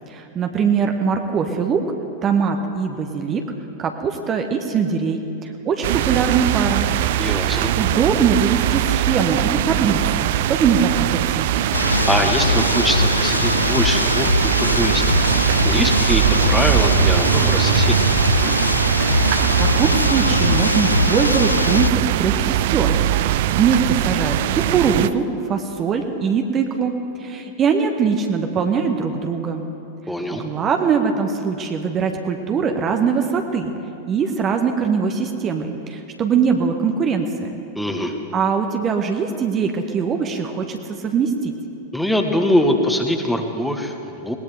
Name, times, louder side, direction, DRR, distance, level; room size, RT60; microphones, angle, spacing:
voice 1, 0.1-1.8 2.2-3.4 3.8-6.8 7.4-11.5 19.2-22.9 23.2-26.9 27.2-29.6 30.3-33.7 34.1-37.5 38.3-41.5, right 6 dB, 30° right, 4 dB, 1.1 m, -22 dB
sound 1, 5.8-25.1, right 13 dB, 55° right, 0.4 m, -21 dB
voice 2, 7.2-7.7 11.8-15.0 15.6-18.1 30.1-30.4 37.7-38.1 41.9-44.4, left 1 dB, 5° left, 4 dB, 1.3 m, -23 dB
sound 2, 11.7-21.9, left 3 dB, 80° left, 0.4 m, -21 dB
20.5 x 18.5 x 3.4 m, 2.9 s
figure-of-eight pair, 90°, 0 cm